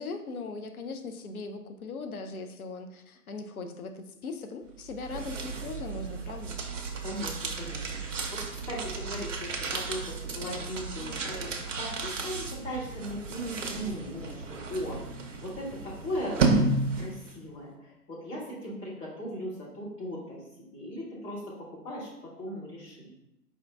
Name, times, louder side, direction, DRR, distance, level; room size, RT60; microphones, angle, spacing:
voice 1, 0.0-6.6, left 4 dB, 65° left, 6 dB, 0.7 m, -39 dB
sound 1, 4.8-17.3, right 3 dB, 50° right, 0.8 m, -33 dB
voice 2, 7.0-16.5 16.9-21.4 21.7-22.1 22.4-23.1, equal, 10° left, -6 dB, 0.9 m, -38 dB
5.0 x 2.7 x 3.4 m, 0.87 s
figure-of-eight pair, 130°, 47 cm